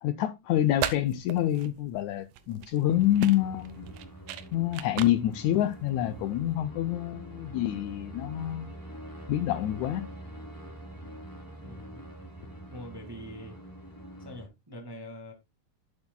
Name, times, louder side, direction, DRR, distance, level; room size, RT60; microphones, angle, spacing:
voice 1, 0.0-3.9 4.5-8.7 9.3-10.1, left 12 dB, 80° left, 1.8 m, -27 dB
sound 1, 0.5-6.6, right 11 dB, 85° right, 2.5 m, -39 dB
sound 2, 2.9-14.5, right 1 dB, 5° left, 2.7 m, -45 dB
voice 2, 11.6-12.0 12.7-13.6 14.2-15.3, equal, 15° right, 0.8 m, -44 dB
11.0 x 8.8 x 2.2 m
omnidirectional pair, 3.7 m